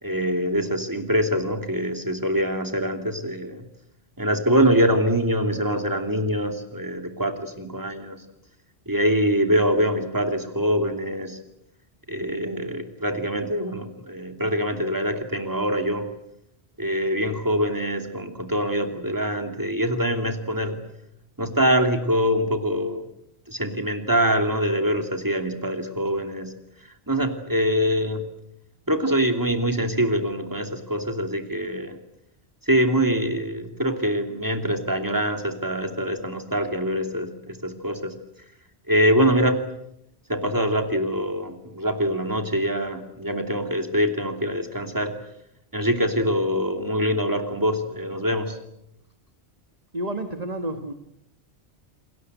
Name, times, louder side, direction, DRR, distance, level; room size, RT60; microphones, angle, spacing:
voice 1, 0.0-3.7 4.2-8.2 8.9-11.4 12.1-16.1 16.8-20.8 21.4-23.1 23.5-26.5 26.8-28.2 28.9-32.0 32.6-38.2 38.9-39.7 40.3-45.2 45.7-48.6, equal, 15° right, 6 dB, 3.0 m, -24 dB
voice 2, 49.9-50.9, right 1 dB, 35° right, 7 dB, 1.7 m, -30 dB
29.0 x 21.0 x 8.1 m, 0.78 s
omnidirectional pair, 1.1 m